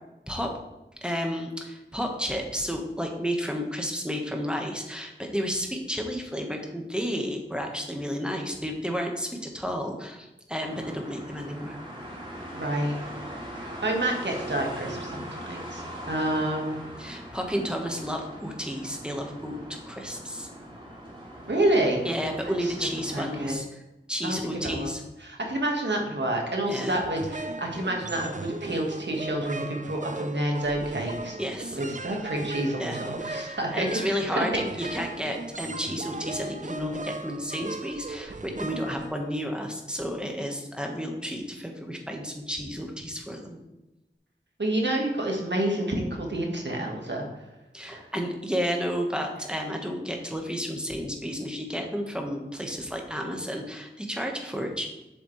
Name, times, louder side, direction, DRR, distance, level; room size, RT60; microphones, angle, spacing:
voice 1, 1.0-11.8 17.0-20.5 22.0-23.8 24.1-25.0 26.7-27.0 31.4-31.8 32.8-43.6 47.7-54.9, equal, 5° right, 2 dB, 1.4 m, -32 dB
sound 1, 10.6-23.5, right 1 dB, 25° right, 2.9 m, -41 dB
voice 2, 12.5-12.9 13.3-13.4 13.8-16.8 21.5-22.0 22.6-22.7 23.1-23.6 24.2-24.9 25.2-31.4 31.7-34.9 44.6-47.3 47.9-48.0, right 1 dB, 65° right, 0 dB, 1.7 m, -28 dB
sound 2, 27.0-39.7, right 3 dB, 40° right, 0.5 m, -37 dB
7.6 x 7.1 x 3.3 m, 0.98 s
wide cardioid pair, 45°, 20 cm